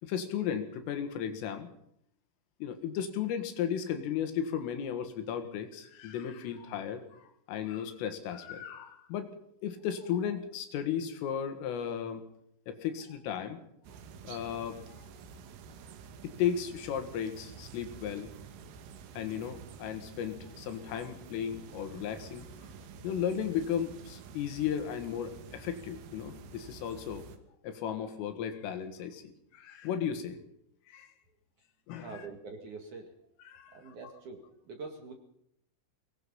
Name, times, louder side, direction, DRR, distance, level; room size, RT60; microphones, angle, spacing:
voice 1, 0.0-1.7 2.6-9.3 9.6-12.2 12.7-13.6 14.2-15.1 16.2-18.3 19.2-22.5 23.0-27.3 27.6-30.4 30.9-31.1 31.9-32.1 33.5-33.8, left 8 dB, 80° left, 8 dB, 4.4 m, -35 dB
sound 1, 13.8-27.4, right 6 dB, 80° right, 4.2 m, -49 dB
voice 2, 32.0-33.1 33.7-35.1, right 4 dB, 50° right, 3 dB, 2.7 m, -45 dB
23.5 x 20.0 x 5.7 m, 0.72 s
omnidirectional pair, 5.9 m